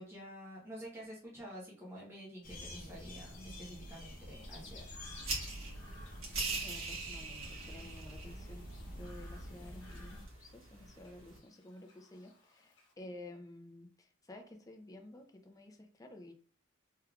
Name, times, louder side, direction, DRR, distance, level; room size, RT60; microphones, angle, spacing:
voice 1, 0.0-5.0, equal, 15° right, -5 dB, 1.0 m, -49 dB
sound 1, 2.4-10.3, equal, 45° left, 0.9 m, -48 dB
Chirp tweet, 4.4-12.9, left 3 dB, 60° left, 1.2 m, -59 dB
sound 2, 5.2-11.4, right 3 dB, 85° right, 1.4 m, -43 dB
voice 2, 6.5-16.3, left 1 dB, 15° left, 4 dB, 0.5 m, -52 dB
3.4 x 3.2 x 2.3 m, 0.43 s
head